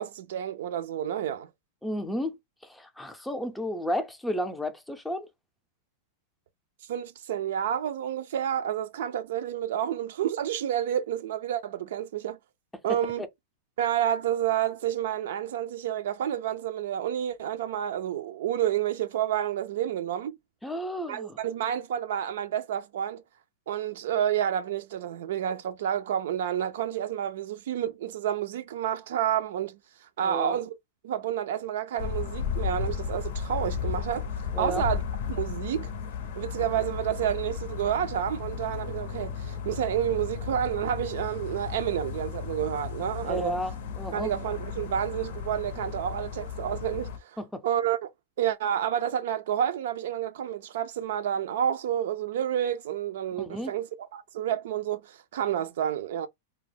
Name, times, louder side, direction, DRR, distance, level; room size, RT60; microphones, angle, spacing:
voice 1, 0.0-1.5 6.9-12.4 12.8-13.2 13.8-20.4 21.1-23.2 23.7-30.8 31.0-34.3 34.6-35.0 35.3-35.9 36.4-43.5 44.1-47.4 47.6-48.1 48.4-56.3, right 10 dB, 70° right, 0.3 m, -29 dB
voice 2, 1.8-2.3 2.6-5.3 20.6-21.4 30.2-30.6 34.5-34.8 43.2-44.3 47.4-47.6 53.4-53.7, equal, 5° left, 0.5 m, -32 dB
sound 1, 32.0-47.2, left 7 dB, 65° left, 0.6 m, -34 dB
2.2 x 2.0 x 3.3 m
hypercardioid pair, 125°, 0 cm